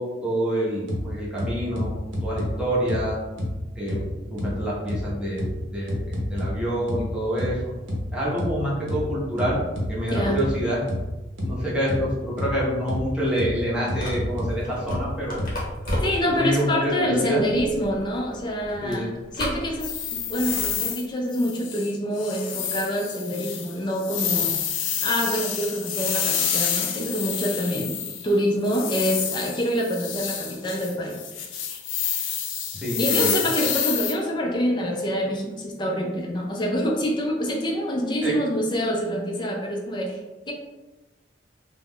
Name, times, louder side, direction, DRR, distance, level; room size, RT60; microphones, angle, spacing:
voice 1, 0.0-1.9 2.2-3.2 3.8-4.0 4.3-5.5 5.7-7.6 8.1-9.6 9.9-10.8 11.4-15.4 16.2-17.4 18.8-19.1 32.7-33.3 38.2-38.3, equal, 5° right, -7 dB, 0.7 m, -27 dB
sound 1, 0.9-1.0 1.4-2.5 2.9-3.0 3.4-3.5 3.9-4.0 4.4-4.5 4.9-5.0 5.4-5.5 5.9-6.5 6.9-7.0 7.4-7.5 7.9-8.0 8.4-8.5 8.9-9.0 9.4-10.5 10.9-11.0 11.4-11.5 11.9-12.0 12.4-12.5 12.9-13.0 13.4-13.5 13.9-14.5 14.9-15.0 15.4-15.5 15.9-16.0, left 1 dB, 85° right, 0.7 m, -28 dB
sound 2, 13.9-20.8, equal, 50° left, 0.8 m, -36 dB
voice 2, 16.0-19.1 19.4-24.5 25.0-27.9 28.2-31.2 33.0-40.2 40.5-40.6, equal, 25° left, 0 dB, 0.4 m, -26 dB
sound 3, 19.8-21.1 21.3-21.9 22.2-28.3 28.6-34.1, left 8 dB, 85° left, 0.4 m, -28 dB
2.3 x 2.1 x 3.5 m, 1.1 s
head